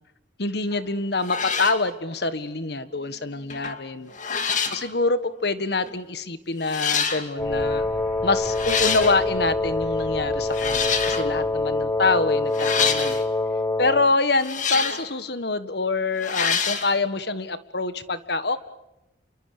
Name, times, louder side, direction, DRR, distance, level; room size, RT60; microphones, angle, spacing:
voice 1, 0.4-4.1 4.7-7.8 8.2-13.2 13.8-18.6, left 3 dB, 60° left, 12 dB, 1.6 m, -25 dB
sound 1, 0.7-0.9 1.2-1.8 3.5-3.8 4.1-4.8 5.8-5.9 6.6-7.2 8.4-9.2 10.5-11.3 12.5-13.2 14.3-15.1 16.2-16.9, left 6 dB, 40° left, 2.3 m, -26 dB
Wind instrument woodwind instrument, 7.4-14.1, left 2 dB, 15° left, 0.8 m, -25 dB
sound 2, 7.4-13.9, equal, 10° right, 6.9 m, -43 dB
28.5 x 23.5 x 6.8 m, 0.92 s
head